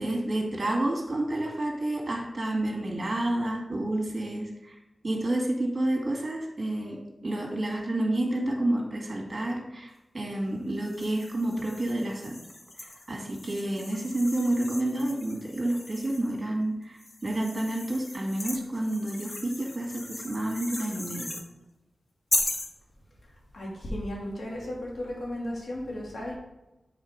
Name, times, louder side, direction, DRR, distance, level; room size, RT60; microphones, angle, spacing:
voice 1, 0.0-4.7 5.0-7.0 7.2-12.4 13.1-21.3, right 1 dB, 40° right, -1 dB, 2.2 m, -29 dB
sound 1, 10.8-16.4 17.0-21.5 22.3-22.7, left 2 dB, 40° left, 0.9 m, -37 dB
voice 2, 23.5-26.4, left 1 dB, 75° left, -3 dB, 2.3 m, -35 dB
7.3 x 3.9 x 5.1 m, 0.97 s
wide cardioid pair, 75°, 0 cm